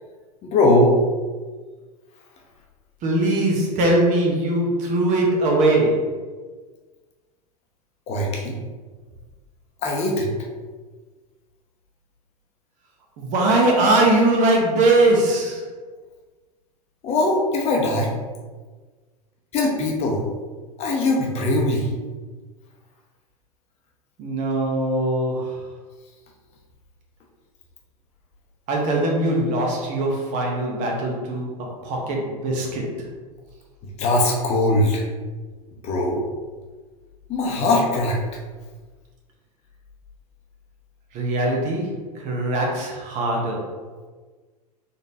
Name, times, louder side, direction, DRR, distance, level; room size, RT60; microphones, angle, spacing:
voice 1, 0.4-0.9 8.1-8.5 9.8-10.3 17.0-18.1 19.5-20.2 20.8-21.9 34.0-35.0 35.8-36.2 37.3-38.2, left 2 dB, 30° left, -1 dB, 0.8 m, -20 dB
voice 2, 3.0-6.0 13.2-15.6 24.2-25.6 28.7-32.9 41.1-43.7, right 2 dB, 40° right, 0 dB, 1.0 m, -21 dB
3.8 x 3.6 x 2.8 m, 1.4 s
figure-of-eight pair, 90°, 20 cm